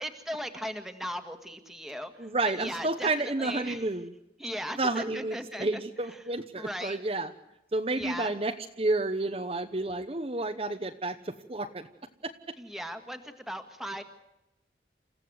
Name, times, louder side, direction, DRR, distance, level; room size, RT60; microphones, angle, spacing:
voice 1, 0.0-2.3 2.6-3.1 3.4-3.9 4.4-5.7 6.6-7.0 8.0-8.3 12.6-14.0, equal, ahead, 6 dB, 1.8 m, -37 dB
voice 2, 2.2-4.1 4.8-7.3 7.7-11.9 12.2-12.3, right 2 dB, 35° right, 6 dB, 0.9 m, -30 dB
29.0 x 15.5 x 8.0 m, 0.92 s
head